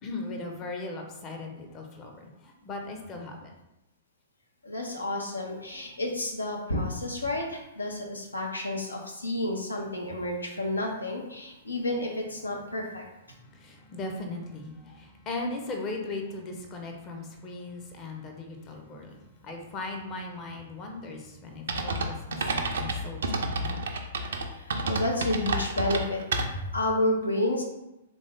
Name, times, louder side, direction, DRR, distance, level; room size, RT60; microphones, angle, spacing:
voice 1, 0.0-3.5 13.4-19.2 19.4-24.0, left 2 dB, 30° left, 2 dB, 0.7 m, -38 dB
voice 2, 4.6-13.0 24.5-27.6, left 1 dB, 85° left, 0 dB, 0.8 m, -30 dB
sound 1, 21.7-26.8, right 2 dB, 65° right, 0.5 m, -30 dB
3.5 x 2.6 x 3.5 m, 0.93 s
figure-of-eight pair, 110°, 0 cm